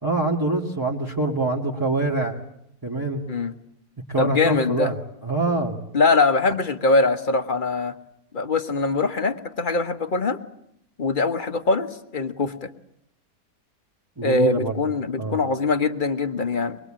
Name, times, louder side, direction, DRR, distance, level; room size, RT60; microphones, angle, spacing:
voice 1, 0.0-2.4 2.8-3.2 4.1-5.0 5.2-5.8 14.2-14.8 15.2-15.4, right 2 dB, 15° right, -3 dB, 2.2 m, -24 dB
voice 2, 4.2-4.9 5.9-7.9 8.3-10.4 11.0-12.7 14.2-16.8, left 3 dB, 35° left, 8 dB, 1.3 m, -22 dB
24.0 x 22.5 x 8.9 m, 0.74 s
omnidirectional pair, 1.7 m